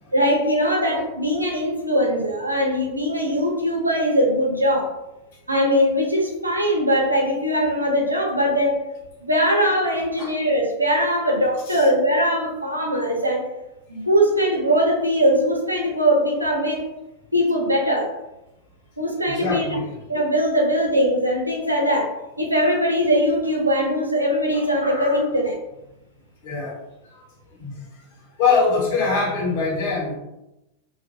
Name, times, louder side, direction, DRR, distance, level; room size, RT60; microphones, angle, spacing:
voice 1, 0.1-4.9 5.5-8.8 9.2-13.4 13.9-16.9 17.3-18.1 19.0-19.7 20.1-25.6, equal, 90° right, -1 dB, 0.5 m, -21 dB
voice 2, 19.2-19.8 26.4-26.8 27.1-27.2 27.6-27.8 28.4-30.1, left 4 dB, 50° left, -3 dB, 0.9 m, -23 dB
2.5 x 2.1 x 2.6 m, 0.94 s
figure-of-eight pair, 90°, 0 cm